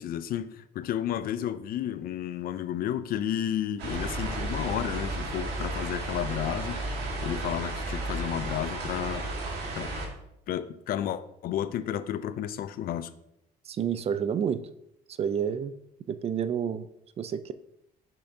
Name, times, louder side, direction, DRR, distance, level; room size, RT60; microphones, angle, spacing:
voice 1, 0.0-6.8 7.2-9.2 9.8-10.0 10.5-13.1, left 10 dB, 60° left, 13 dB, 0.5 m, -32 dB
sound 1, 3.8-10.1, right 2 dB, 80° right, 1.7 m, -33 dB
voice 2, 13.7-14.6 15.2-15.7 16.1-16.9 17.2-17.5, right 8 dB, 35° right, 14 dB, 0.4 m, -29 dB
6.8 x 5.6 x 2.7 m, 0.80 s
cardioid pair, 110°, 17 cm